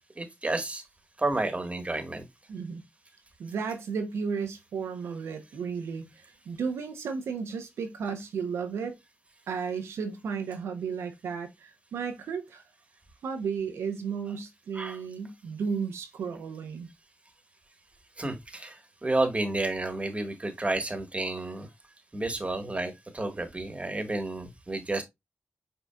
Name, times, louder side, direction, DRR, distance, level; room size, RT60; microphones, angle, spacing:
voice 1, 0.2-0.8 1.2-2.2 14.7-15.0 18.2-21.7 22.1-25.0, right 2 dB, 30° right, 1.4 m, -31 dB
voice 2, 2.5-2.8 3.4-8.9 9.5-12.6 13.2-16.9, right 6 dB, 90° right, 0.8 m, -34 dB
5.4 x 3.9 x 2.3 m
cardioid pair, 45°, 4 cm